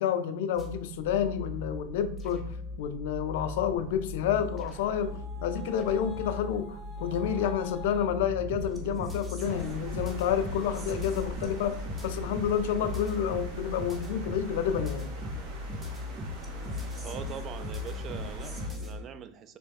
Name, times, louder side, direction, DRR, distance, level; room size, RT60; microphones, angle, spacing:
voice 1, 0.0-15.1, left 8 dB, 70° left, 0.3 m, -29 dB
sound 1, 0.5-19.0, left 2 dB, 15° right, 0.8 m, -38 dB
sound 2, 1.6-2.9 3.4-4.1 4.6-6.5 7.0-8.9 9.4-10.1, left 2 dB, 20° left, 0.7 m, -53 dB
sound 3, 9.4-18.7, right 2 dB, 55° right, 0.9 m, -46 dB
voice 2, 17.0-19.6, right 7 dB, 35° right, 0.3 m, -42 dB
3.2 x 3.0 x 3.4 m
supercardioid pair, 115°, 0 cm